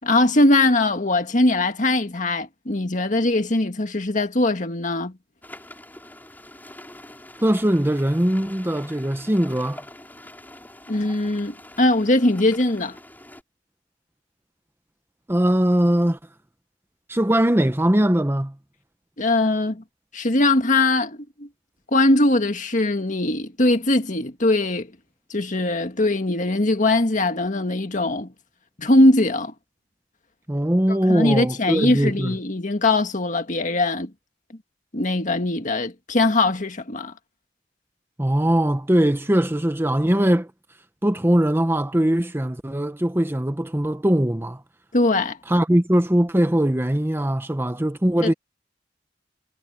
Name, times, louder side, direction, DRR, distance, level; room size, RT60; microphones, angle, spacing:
voice 1, 0.0-5.1 10.9-13.0 19.2-19.8 20.1-21.5 21.9-24.9 25.3-28.3 28.8-29.5 30.9-34.1 34.9-37.1 44.9-45.4 48.2-48.3, left 2 dB, 45° left, 1.9 m, -21 dB
sound 1, 5.4-13.4, left 1 dB, 10° left, 5.8 m, -44 dB
voice 2, 7.4-9.8 15.3-16.2 17.1-18.5 30.5-32.4 38.2-40.5 41.0-44.6 45.5-48.3, right 1 dB, 15° right, 0.8 m, -21 dB
head